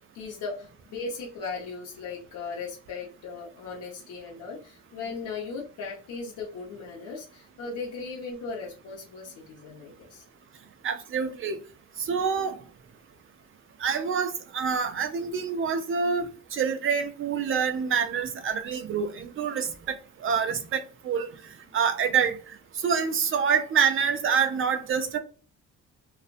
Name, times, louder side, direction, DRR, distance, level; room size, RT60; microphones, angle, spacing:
voice 1, 0.1-10.2, left 4 dB, 85° left, 0.8 m, -37 dB
voice 2, 10.8-11.6 12.1-12.6 13.8-20.0 20.2-21.3 21.7-22.4 22.8-25.2, right 6 dB, 45° right, 0.5 m, -26 dB
2.4 x 2.1 x 2.5 m
cardioid pair, 90°, 30 cm